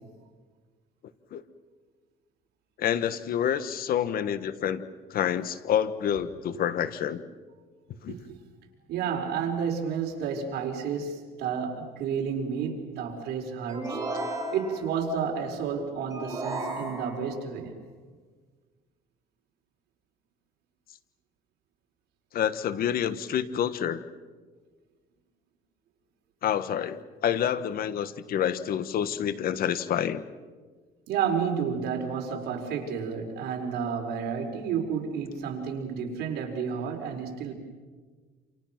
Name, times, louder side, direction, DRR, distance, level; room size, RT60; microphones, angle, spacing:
voice 1, 2.8-4.8 5.1-7.2 8.0-8.2 22.3-24.0 26.4-30.2, left 9 dB, 60° left, 1.4 m, -28 dB
voice 2, 8.9-14.0 14.5-17.8 31.1-37.5, right 6 dB, 75° right, 5.1 m, -31 dB
sound 1, 13.7-15.0 16.1-17.4, right 2 dB, 20° right, 6.6 m, -34 dB
28.0 x 28.0 x 6.1 m
cardioid pair, 110°, 17 cm